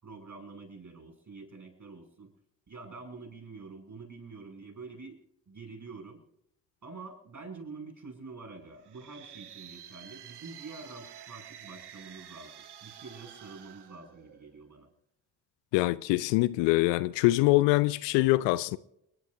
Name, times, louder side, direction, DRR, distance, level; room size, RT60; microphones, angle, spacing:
voice 1, 0.0-2.3 2.7-5.2 5.5-6.2 6.8-14.9, right 4 dB, 35° right, 5.9 m, -46 dB
sound 1, 8.8-14.7, right 9 dB, 55° right, 1.6 m, -50 dB
voice 2, 15.7-18.8, left 19 dB, 65° left, 0.6 m, -24 dB
29.5 x 11.0 x 2.6 m
figure-of-eight pair, 40°, 48 cm